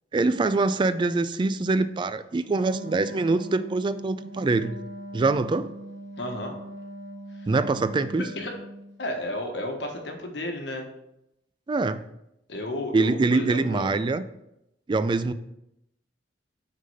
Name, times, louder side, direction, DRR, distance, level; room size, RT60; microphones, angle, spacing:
voice 1, 0.1-4.8 5.1-5.7 7.5-8.2 11.7-12.0 12.9-14.2 14.9-15.3, right 3 dB, 25° right, 13 dB, 0.3 m, -24 dB
Wind instrument woodwind instrument, 2.4-8.9, right 1 dB, 70° right, 1.0 m, -40 dB
voice 2, 6.2-6.6 7.3-7.5 8.4-8.5 9.0-10.9 12.5-13.9, left 1 dB, 70° left, 3 dB, 1.2 m, -32 dB
6.2 x 3.9 x 5.5 m, 0.84 s
head